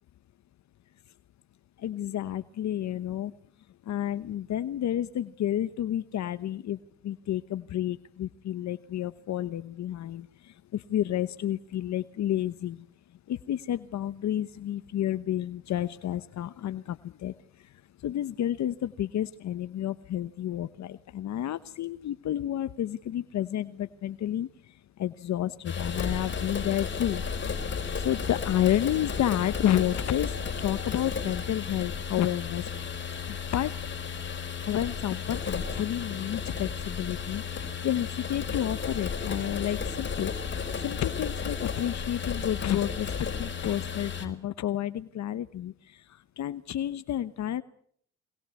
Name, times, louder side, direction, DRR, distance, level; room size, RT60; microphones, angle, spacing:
voice 1, 1.8-3.3 3.9-6.8 7.0-12.8 13.3-17.3 18.0-24.5 25.0-27.2 28.0-32.7 33.3-33.7 34.7-40.3 40.8-43.1 43.4-47.6, left 11 dB, 65° left, 13 dB, 1.0 m, -30 dB
sound 1, 25.6-44.3, left 6 dB, 40° left, 4.6 m, -33 dB
23.5 x 19.5 x 8.3 m, 0.64 s
cardioid pair, 90°, 30 cm